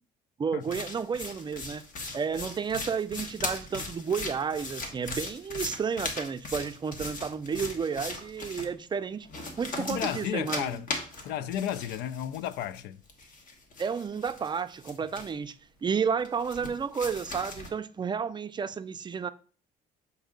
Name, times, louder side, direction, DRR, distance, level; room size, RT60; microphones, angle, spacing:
voice 1, 0.4-1.8 2.1-9.3 9.6-10.8 13.8-15.5 15.8-19.3, right 6 dB, 25° right, 0.4 m, -31 dB
sound 1, 0.6-8.7 9.2-12.8 13.1-15.5 16.2-17.7, left 2 dB, 50° left, 1.4 m, -38 dB
voice 2, 9.8-10.9 11.2-13.0, left 10 dB, 80° left, 0.4 m, -33 dB
7.5 x 2.7 x 5.1 m
cardioid pair, 110°, 17 cm